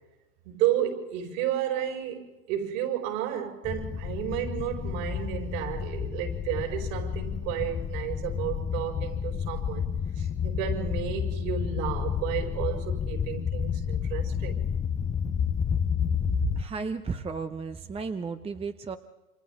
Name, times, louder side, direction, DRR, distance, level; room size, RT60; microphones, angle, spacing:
voice 1, 0.4-14.7, right 10 dB, 60° right, 5.5 m, -32 dB
sound 1, 3.6-16.6, left 7 dB, 15° left, 0.7 m, -30 dB
voice 2, 16.5-19.0, right 4 dB, 15° right, 0.9 m, -34 dB
29.0 x 26.0 x 3.7 m
hypercardioid pair, 100°, 44 cm